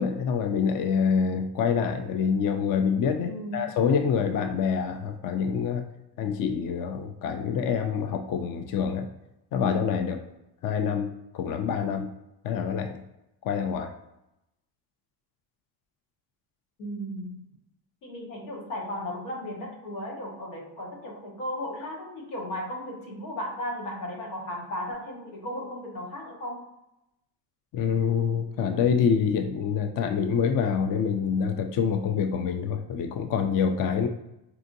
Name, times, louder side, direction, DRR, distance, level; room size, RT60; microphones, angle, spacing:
voice 1, 0.0-5.8 6.2-9.1 9.5-10.2 10.6-12.1 12.4-13.0 13.4-13.9 27.7-34.1, left 6 dB, 45° left, 6 dB, 0.5 m, -26 dB
voice 2, 3.2-3.6 16.8-17.5 18.0-26.6, left 1 dB, 90° left, -1 dB, 1.3 m, -35 dB
4.6 x 2.5 x 2.6 m, 0.88 s
supercardioid pair, 80°, 49 cm